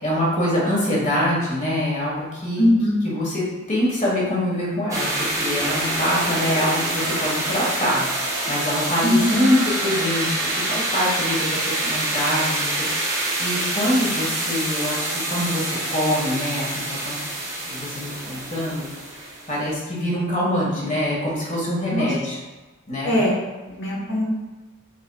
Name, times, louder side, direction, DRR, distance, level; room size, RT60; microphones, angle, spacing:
voice 1, 0.0-2.7 3.0-5.1 5.4-17.2 17.6-18.9 19.5-22.4 22.9-23.2, left 1 dB, 35° left, -5 dB, 1.3 m, -24 dB
voice 2, 2.6-3.0 9.0-9.4 21.9-22.1 23.0-24.2, left 1 dB, 55° left, -4 dB, 1.2 m, -21 dB
sound 1, 4.9-19.7, right 1 dB, 15° right, 0.8 m, -26 dB
4.1 x 4.0 x 2.3 m, 1.2 s
head